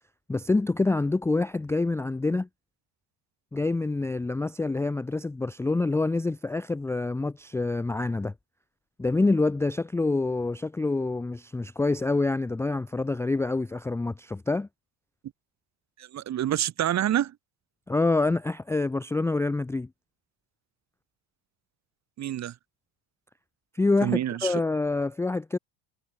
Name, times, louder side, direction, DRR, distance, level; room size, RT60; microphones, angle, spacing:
voice 1, 0.3-2.5 3.5-8.3 9.0-14.7 17.9-19.9 23.7-25.6, left 3 dB, 5° left, 0.6 m, -26 dB
voice 2, 16.0-17.3 22.2-22.5 24.0-24.6, right 11 dB, 35° right, 1.9 m, -27 dB
cardioid pair, 175°, 46 cm